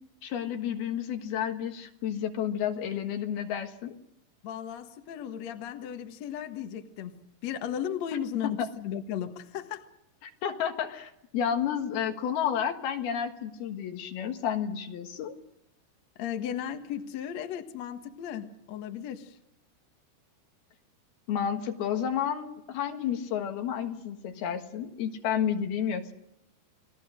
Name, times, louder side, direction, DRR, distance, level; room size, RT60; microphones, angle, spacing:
voice 1, 0.2-4.0 8.4-8.7 10.4-15.3 21.3-26.1, left 8 dB, 75° left, 5 dB, 3.5 m, -31 dB
voice 2, 4.4-7.1 7.4-9.9 16.2-19.4, left 9 dB, 55° left, 6 dB, 2.2 m, -35 dB
29.5 x 20.5 x 6.5 m, 0.81 s
omnidirectional pair, 4.5 m